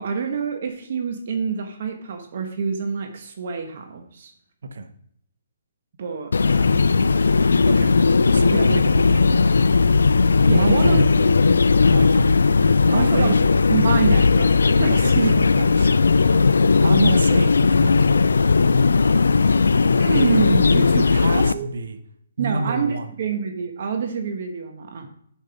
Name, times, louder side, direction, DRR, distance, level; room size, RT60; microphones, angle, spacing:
voice 1, 0.0-4.3 6.0-6.9 10.5-11.3 12.9-13.4 13.7-15.3 19.9-20.9 21.3-21.7 22.4-25.0, right 5 dB, 55° right, 4 dB, 1.1 m, -26 dB
sound 1, 6.3-21.5, left 4 dB, 85° left, 0.3 m, -17 dB
voice 2, 7.7-9.8 10.1-11.1 11.9-12.4 12.8-13.4 14.9-16.5 16.8-18.3 20.6-22.0 22.4-23.1 25.0-25.1, right 4 dB, 70° right, 8 dB, 0.9 m, -28 dB
6.9 x 5.3 x 5.1 m, 0.69 s
hypercardioid pair, 155°, 0 cm